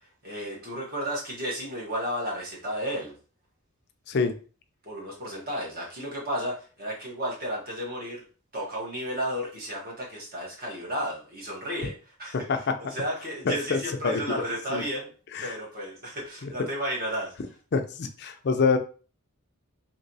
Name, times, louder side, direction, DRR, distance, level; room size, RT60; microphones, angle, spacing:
voice 1, 0.2-3.1 4.8-8.2 8.5-15.1 15.4-17.3, equal, 40° right, -2 dB, 1.2 m, -33 dB
voice 2, 12.3-12.8 13.4-14.2 14.7-14.8 15.3-15.6 17.7-18.8, left 4 dB, 50° left, 7 dB, 0.4 m, -26 dB
3.0 x 2.9 x 2.7 m, 0.37 s
head